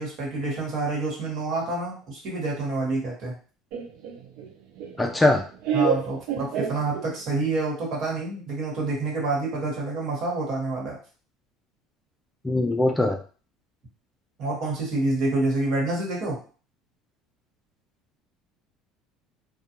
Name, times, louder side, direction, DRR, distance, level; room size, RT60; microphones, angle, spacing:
voice 1, 0.0-3.3 5.7-11.0 14.4-16.4, right 2 dB, 55° right, -3 dB, 1.3 m, -28 dB
Laughter, 3.7-7.4, right 6 dB, 75° right, 0.4 m, -29 dB
voice 2, 5.0-5.4 12.4-13.2, left 2 dB, 10° left, 3 dB, 0.3 m, -21 dB
2.3 x 2.2 x 2.8 m, 0.39 s
supercardioid pair, 110°, 0 cm